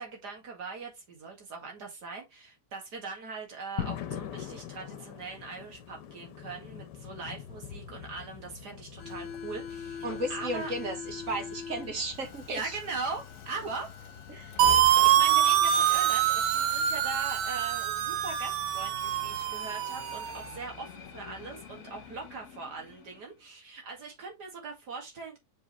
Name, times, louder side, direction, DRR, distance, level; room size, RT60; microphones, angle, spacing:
voice 1, 0.0-10.7 12.5-13.9 15.0-25.4, right 4 dB, 65° right, 2.6 m, -40 dB
sound 1, 3.8-16.7, left 9 dB, 80° left, 1.3 m, -45 dB
Subway metro underground, 9.0-23.3, left 6 dB, 50° left, 1.5 m, -43 dB
voice 2, 10.0-12.8 14.3-14.6, right 1 dB, 50° right, 1.8 m, -35 dB
sound 2, 14.6-20.4, right 11 dB, 85° right, 1.3 m, -25 dB
6.1 x 4.9 x 3.1 m
omnidirectional pair, 1.8 m